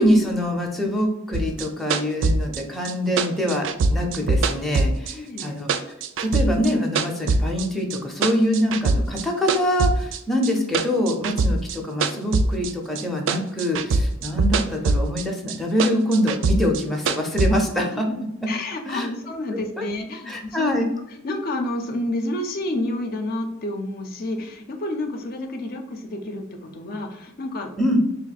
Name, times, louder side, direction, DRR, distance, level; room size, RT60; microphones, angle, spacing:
voice 1, 0.0-5.7 6.2-18.1 18.9-19.1 19.8-19.9 20.3-20.9 27.8-28.0, equal, ahead, -1 dB, 0.6 m, -24 dB
sound 1, 1.3-5.4 5.7-7.7 7.9-9.2 9.5-13.0 13.3-15.2 15.5-17.5, right 3 dB, 65° right, 0.3 m, -22 dB
voice 2, 5.1-5.6 17.7-18.2 18.5-28.0, left 1 dB, 50° left, 4 dB, 0.5 m, -30 dB
3.1 x 2.9 x 4.1 m, 0.85 s
head